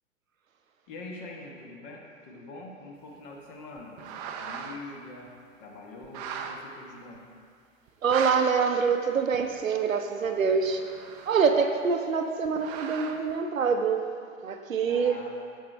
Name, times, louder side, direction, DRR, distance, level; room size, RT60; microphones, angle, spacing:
voice 1, 0.9-7.2 14.9-15.4, left 2 dB, 40° left, 0 dB, 1.3 m, -44 dB
sound 1, 3.8-4.8 5.3-5.4 6.0-6.6 7.2-7.3 7.9-8.4 9.3-9.4 10.2-11.8 12.4-13.3, right 7 dB, 30° right, 0.5 m, -38 dB
voice 2, 8.0-10.8 11.3-14.1 14.4-15.2, right 5 dB, 85° right, 5 dB, 0.8 m, -25 dB
8.7 x 6.5 x 3.3 m, 2.2 s
figure-of-eight pair, 110°, 39 cm